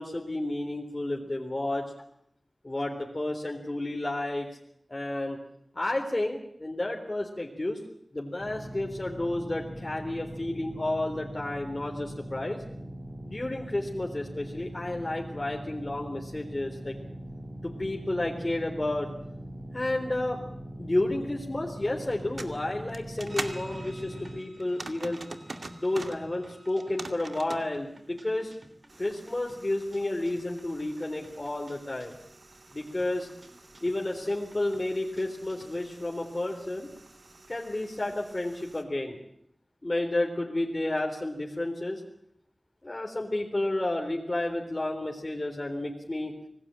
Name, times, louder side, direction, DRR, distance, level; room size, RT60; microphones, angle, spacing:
voice 1, 0.0-1.8 2.6-4.5 4.9-5.4 5.7-7.8 8.1-12.6 13.2-16.9 17.6-19.1 19.7-20.4 20.8-25.2 25.8-28.5 29.0-32.1 32.7-33.3 33.8-36.9 37.5-39.2 39.8-42.0 42.8-46.3, left 1 dB, 40° left, 0 dB, 3.8 m, -31 dB
sound 1, 8.4-24.4, right 1 dB, 25° right, 2.3 m, -41 dB
sound 2, 22.1-23.6 24.6-26.2 26.7-27.7 28.9-38.8, right 2 dB, 75° right, 2.2 m, -45 dB
sound 3, 23.3-36.0, right 1 dB, 60° right, 4.0 m, -52 dB
26.0 x 19.0 x 9.0 m, 0.74 s
wide cardioid pair, 40°, 0 cm